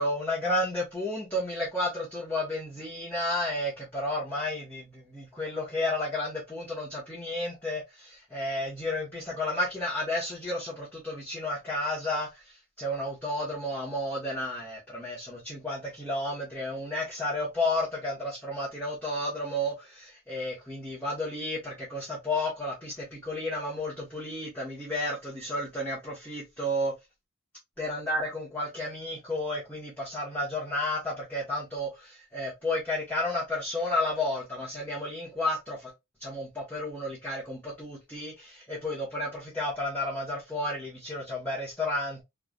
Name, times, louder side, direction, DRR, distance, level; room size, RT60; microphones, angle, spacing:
voice 1, 0.0-26.9 27.8-35.9 36.2-42.2, left 1 dB, 5° left, 1.5 m, -32 dB
3.9 x 3.4 x 2.4 m
head